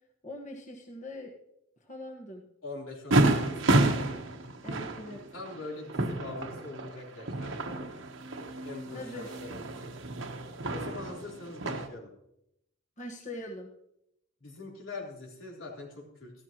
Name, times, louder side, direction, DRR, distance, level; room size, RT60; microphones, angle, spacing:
voice 1, 0.2-1.3 1.8-2.4 4.6-5.2 8.9-9.3 13.0-13.7, left 1 dB, 40° left, -1 dB, 1.4 m, -41 dB
voice 2, 2.6-3.8 5.3-8.1 8.6-9.8 10.7-12.1 14.4-16.3, left 3 dB, 85° left, -2 dB, 3.6 m, -43 dB
sound 1, 3.1-11.9, right 2 dB, 75° right, 1.2 m, -30 dB
15.0 x 12.5 x 3.0 m, 0.79 s
head